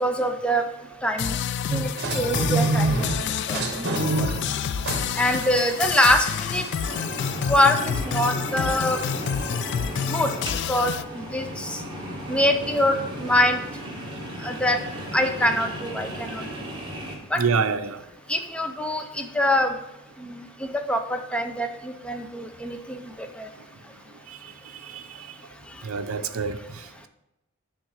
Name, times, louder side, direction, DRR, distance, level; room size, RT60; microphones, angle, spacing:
voice 1, 0.0-0.6 1.0-1.4 1.7-1.9 2.1-3.1 3.5-3.9 4.2-4.3 5.2-6.3 6.5-6.6 7.5-9.0 10.1-10.3 10.7-11.8 12.3-13.6 14.4-14.8 15.1-16.4 17.3-17.4 18.3-19.7 20.2-20.4 20.7-23.0 23.4-23.5, left 1 dB, 5° left, 5 dB, 0.5 m, -24 dB
sound 1, 1.2-11.0, left 8 dB, 55° left, 0.3 m, -29 dB
sound 2, 1.7-7.0, right 2 dB, 50° right, 1.1 m, -28 dB
sound 3, 6.8-17.1, equal, 20° right, 1.6 m, -35 dB
voice 2, 17.4-18.0 24.9-25.0 25.8-26.6, right 5 dB, 70° right, 8 dB, 0.6 m, -25 dB
9.4 x 3.7 x 6.4 m, 0.91 s
head